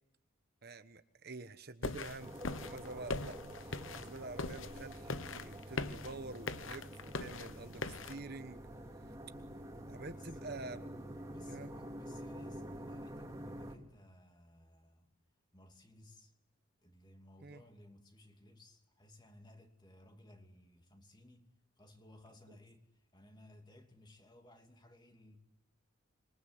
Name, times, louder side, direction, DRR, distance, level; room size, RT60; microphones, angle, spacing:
voice 1, 0.6-2.3 2.6-3.4 3.6-8.6 9.9-10.8 11.5-11.7 17.4-17.6, right 2 dB, 50° right, 1.2 m, -47 dB
sound 1, 1.8-8.2, left 3 dB, 70° left, 1.0 m, -42 dB
sound 2, 2.2-13.8, right 1 dB, 15° right, 2.8 m, -48 dB
voice 2, 10.1-10.6 11.3-15.1 15.5-16.3 16.8-21.5 21.8-25.4, left 1 dB, 20° left, 2.6 m, -59 dB
26.5 x 23.5 x 7.9 m
head